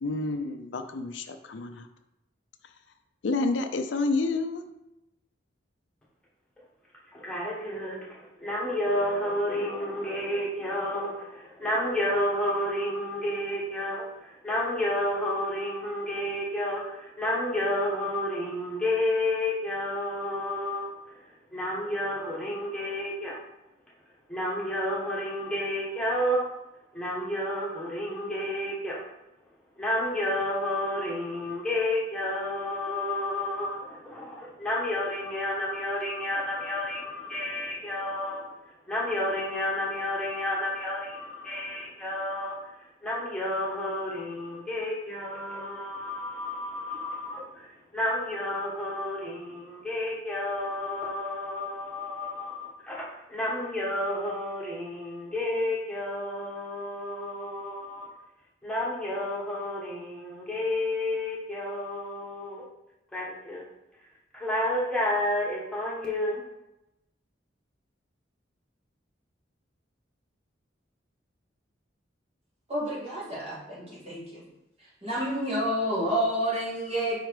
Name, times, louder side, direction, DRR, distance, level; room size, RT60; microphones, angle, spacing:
voice 1, 0.0-1.9 3.2-4.6, left 3 dB, 80° left, 7 dB, 0.5 m, -29 dB
voice 2, 7.2-20.9 21.5-23.4 24.3-26.4 26.9-29.0 29.8-38.5 38.9-42.6 43.0-47.7 47.9-58.1 58.6-62.6 63.1-63.6 64.3-66.4, left 1 dB, 5° left, -5 dB, 1.5 m, -30 dB
voice 3, 72.7-74.4 75.0-77.3, equal, 35° right, -6 dB, 2.1 m, -29 dB
4.8 x 4.6 x 4.8 m, 0.90 s
head